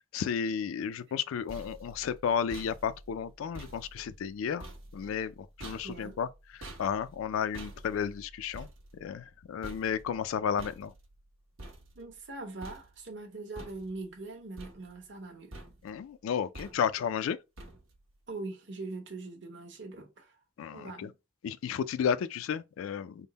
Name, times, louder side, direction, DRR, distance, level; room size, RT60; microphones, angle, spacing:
voice 1, 0.1-4.7 4.9-6.3 6.8-8.7 9.0-10.9 15.8-17.4 20.6-21.1 21.4-23.3, left 7 dB, 80° left, 0.3 m, -32 dB
sound 1, 1.1-12.3 12.6-13.2 13.6-14.2 14.6-15.3 15.5-16.0 16.5-17.1 17.6-18.1, right 1 dB, 75° right, 1.1 m, -49 dB
voice 2, 5.8-6.2 11.9-15.5 18.3-20.3 20.7-21.1, right 3 dB, 60° right, 1.2 m, -42 dB
3.6 x 2.0 x 3.9 m
head